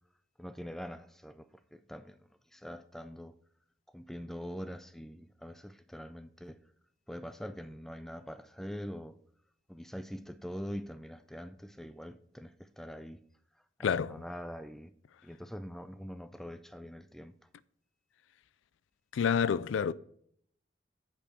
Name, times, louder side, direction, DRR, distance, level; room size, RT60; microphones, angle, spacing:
voice 1, 0.4-3.3 3.9-6.6 7.1-9.2 9.7-13.2 13.8-14.9 15.2-17.3, equal, ahead, 0.4 m, -44 dB
voice 2, 13.8-14.2 19.1-19.9, left 7 dB, 90° left, 0.4 m, -28 dB
8.8 x 5.4 x 4.8 m
head